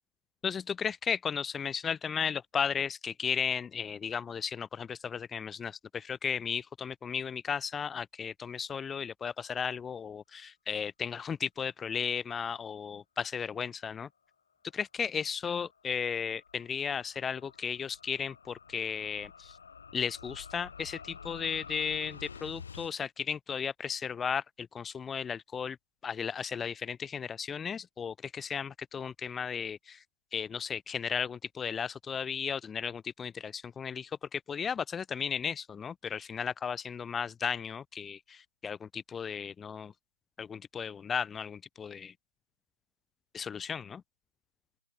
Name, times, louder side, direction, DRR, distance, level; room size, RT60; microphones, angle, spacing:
voice 1, 0.4-14.1 14.7-19.6 19.9-25.8 26.0-30.0 30.3-39.9 40.4-42.1 43.3-44.0, left 7 dB, 5° left, 1.0 m, -35 dB
sound 1, 15.1-22.9, left 6 dB, 55° left, 7.4 m, -50 dB
open air
hypercardioid pair, 165°, 0 cm